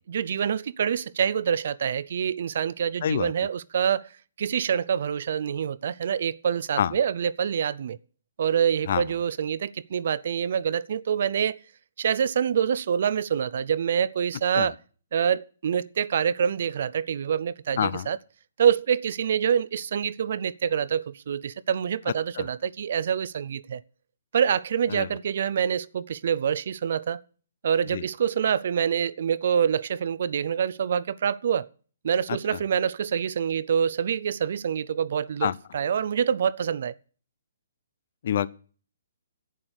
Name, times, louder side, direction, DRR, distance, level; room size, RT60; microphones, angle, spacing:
voice 1, 0.1-4.1 4.4-8.0 8.4-11.6 12.0-14.7 15.1-18.2 18.6-23.8 24.3-27.2 27.6-31.7 32.0-36.9, right 8 dB, 55° right, 0.6 m, -26 dB
voice 2, 3.0-3.3 6.8-6.9 8.9-9.0 14.5-14.7 17.8-18.1 22.3-22.5 24.9-25.1 27.9-28.0 35.4-35.5 38.2-38.5, left 9 dB, 55° left, 0.6 m, -26 dB
11.0 x 8.7 x 8.1 m
figure-of-eight pair, 130°, 0 cm